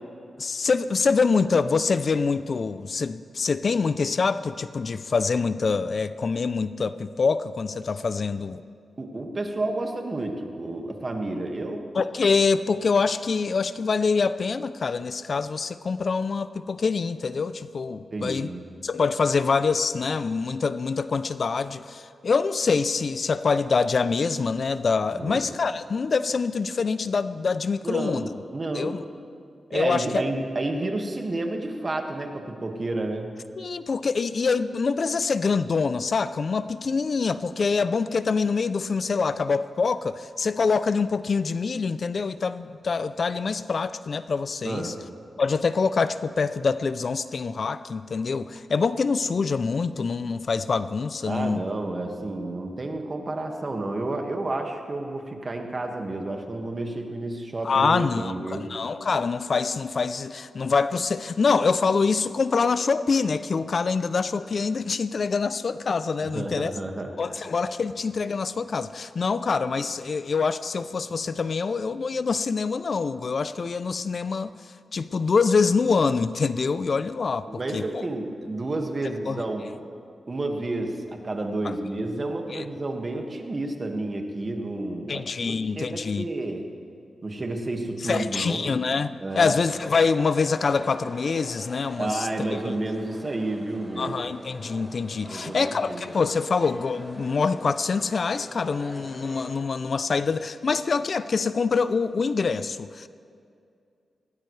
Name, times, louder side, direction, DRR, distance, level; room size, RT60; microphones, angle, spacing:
voice 1, 0.4-8.6 11.9-18.5 18.8-28.3 28.7-29.0 29.7-30.2 33.6-44.9 45.4-51.6 57.6-66.7 67.2-74.5 74.9-78.1 79.3-79.4 81.6-81.7 82.5-82.6 85.1-86.2 88.0-92.3 92.6-92.8 94.0-103.1, left 4 dB, 60° left, 14 dB, 0.4 m, -25 dB
voice 2, 9.0-11.9 18.1-18.6 25.1-25.4 27.8-29.0 29.7-33.4 44.6-45.0 51.3-58.7 66.2-67.1 77.5-79.7 80.3-86.7 87.2-88.7 89.2-89.5 92.0-94.2 95.3-96.0, right 2 dB, 40° right, 3 dB, 1.8 m, -30 dB
sound 1, 89.3-99.5, equal, 5° left, 4.1 m, -43 dB
19.5 x 18.0 x 3.3 m, 2.4 s
cardioid pair, 65°, 0 cm